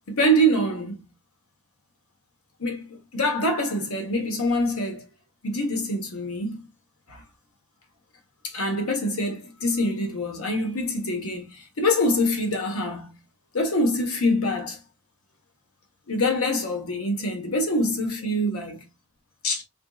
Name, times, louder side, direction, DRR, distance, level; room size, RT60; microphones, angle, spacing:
voice 1, 0.1-1.1 2.6-5.0 5.4-6.6 7.1-7.2 8.4-13.2 13.5-14.8 16.1-18.8 19.4-19.6, equal, 75° left, 1.1 m, -25 dB
4.3 x 2.6 x 2.3 m
head